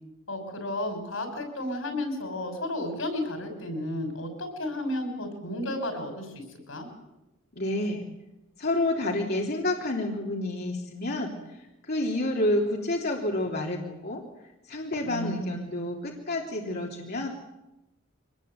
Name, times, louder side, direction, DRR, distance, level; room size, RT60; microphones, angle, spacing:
voice 1, 0.3-6.9 15.0-15.6, left 1 dB, 90° left, 6 dB, 6.1 m, -33 dB
voice 2, 7.5-8.0 8.6-11.3 11.9-14.2 14.7-17.3, left 1 dB, 55° left, -1 dB, 3.2 m, -29 dB
24.5 x 20.0 x 8.3 m, 0.97 s
head